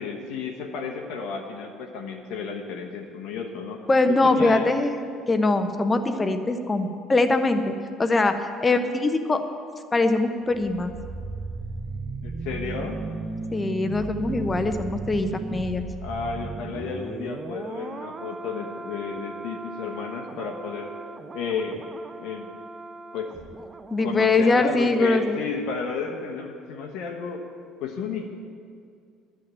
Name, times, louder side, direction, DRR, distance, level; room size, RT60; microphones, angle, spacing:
voice 1, 0.0-4.7 12.2-13.0 16.0-20.9 21.3-21.8 22.2-22.5 23.1-23.3 24.0-27.4 27.8-28.3, left 5 dB, 60° left, 2 dB, 1.1 m, -32 dB
voice 2, 3.9-8.3 8.6-9.4 9.9-10.9 13.5-15.8 23.9-25.4, left 2 dB, 20° left, 8 dB, 0.9 m, -22 dB
sound 1, 10.4-25.4 25.7-25.9, right 3 dB, 30° right, 0.8 m, -37 dB
11.0 x 7.3 x 8.9 m, 2.3 s
figure-of-eight pair, 55°, 0 cm